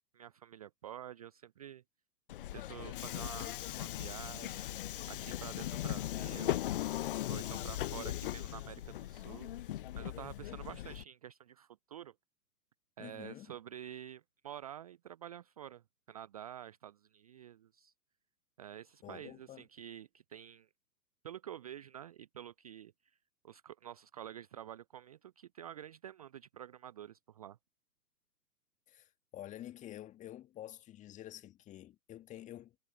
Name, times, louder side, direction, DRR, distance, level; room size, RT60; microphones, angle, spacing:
voice 1, 0.1-1.8 2.5-4.7 5.1-6.6 7.3-9.5 9.9-12.1 13.0-17.9 18.6-20.7 21.2-23.2 23.4-27.6, right 11 dB, 25° right, 0.6 m, -49 dB
Subway metro underground, 2.3-11.0, left 13 dB, 35° left, 0.9 m, -39 dB
voice 2, 13.0-13.5 19.0-19.7 28.9-32.7, left 13 dB, 15° left, 1.7 m, -49 dB
figure-of-eight pair, 120°, 49 cm